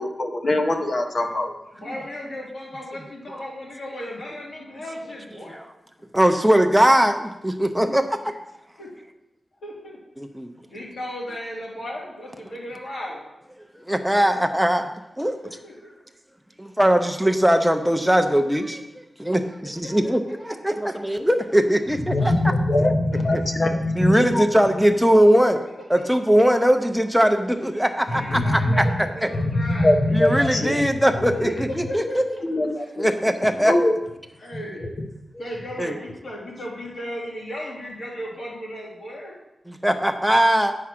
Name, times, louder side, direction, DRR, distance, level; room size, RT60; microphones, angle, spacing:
voice 1, 0.0-1.5 22.0-24.4 28.1-29.0 29.3-30.9 31.2-31.5 32.4-33.1 33.6-33.9 34.5-34.9 35.3-35.5, left 1 dB, 45° left, 4 dB, 0.9 m, -22 dB
voice 2, 1.8-5.6 7.8-8.0 8.8-8.9 9.6-10.0 10.7-13.2 15.6-15.9 19.8-19.9 23.1-23.5 27.8-30.7 31.5-32.6 34.4-34.9 35.4-39.3, equal, 75° left, -4 dB, 2.9 m, -36 dB
voice 3, 6.1-8.3 10.2-10.5 13.9-14.9 15.2-15.4 16.6-22.5 22.8-22.9 23.3-23.4 24.0-25.6 25.9-29.3 30.1-32.2 33.0-33.7 35.8-36.0 39.7-40.8, equal, ahead, 5 dB, 0.6 m, -20 dB
9.1 x 4.8 x 5.9 m, 0.92 s
wide cardioid pair, 150°, 0 cm